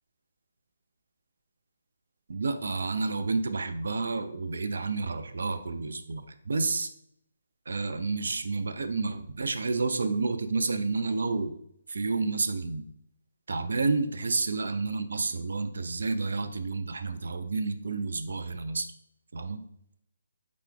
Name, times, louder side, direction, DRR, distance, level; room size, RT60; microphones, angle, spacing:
voice 1, 2.3-6.9 7.7-11.5 11.9-12.8 13.5-18.9 19.3-19.6, right 3 dB, 60° right, 9 dB, 0.4 m, -30 dB
4.4 x 4.1 x 2.3 m, 0.73 s
figure-of-eight pair, 140°, 0 cm